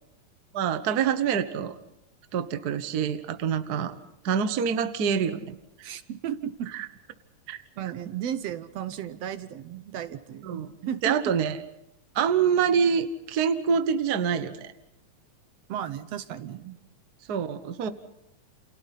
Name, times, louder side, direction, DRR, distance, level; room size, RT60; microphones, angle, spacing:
voice 1, 0.5-1.8 2.3-4.0 4.2-5.9 6.7-6.9 7.5-7.6 10.4-10.7 11.0-11.6 12.1-14.7 17.3-17.9, right 7 dB, 85° right, 10 dB, 0.8 m, -26 dB
voice 2, 5.8-6.7 7.8-11.2 15.7-16.8, right 10 dB, 65° right, 12 dB, 1.8 m, -34 dB
29.5 x 28.0 x 4.2 m, 0.87 s
omnidirectional pair, 3.5 m